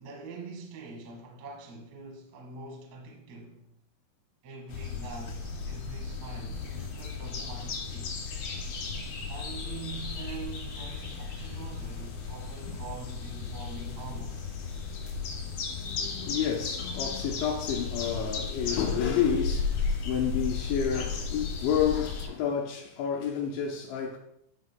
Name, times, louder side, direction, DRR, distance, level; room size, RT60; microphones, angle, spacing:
voice 1, 0.0-3.7 4.4-8.2 9.3-14.4, right 4 dB, 70° right, 1.6 m, -44 dB
sound 1, 4.7-22.3, left 4 dB, 65° left, 2.7 m, -35 dB
voice 2, 15.8-24.2, left 8 dB, 85° left, 2.9 m, -30 dB
12.5 x 5.4 x 2.2 m
omnidirectional pair, 5.6 m